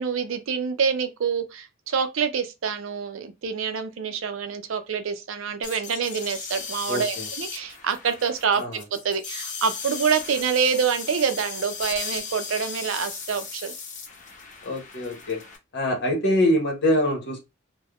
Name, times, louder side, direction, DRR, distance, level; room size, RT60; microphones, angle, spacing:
voice 1, 0.0-8.6 8.9-13.7, right 6 dB, 80° right, 0.5 m, -26 dB
sound 1, 5.6-15.6, left 5 dB, 40° left, 0.6 m, -36 dB
voice 2, 6.9-7.3 8.6-8.7 14.6-15.4 15.7-17.4, left 1 dB, 60° left, 1.0 m, -24 dB
3.4 x 2.1 x 2.3 m
head